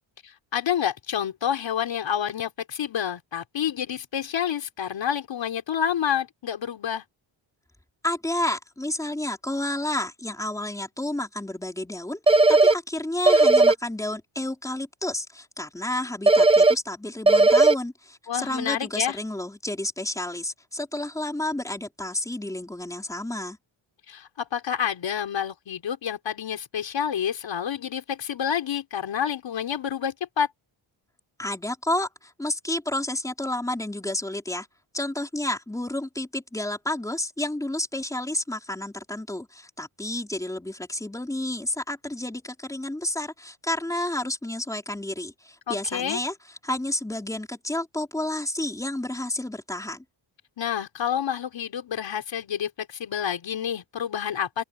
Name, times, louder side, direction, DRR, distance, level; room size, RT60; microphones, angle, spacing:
voice 1, 0.2-7.0 18.3-19.2 24.1-30.5 45.7-46.2 50.6-54.6, left 9 dB, 60° left, 3.7 m, -28 dB
voice 2, 8.0-23.6 31.4-34.7 34.9-46.3 46.6-50.0, left 1 dB, 5° left, 4.4 m, -30 dB
sound 1, 12.3-12.7 13.3-13.7 16.3-16.7 17.3-17.7, right 2 dB, 10° right, 0.5 m, -15 dB
open air
wide cardioid pair, 160°, 49 cm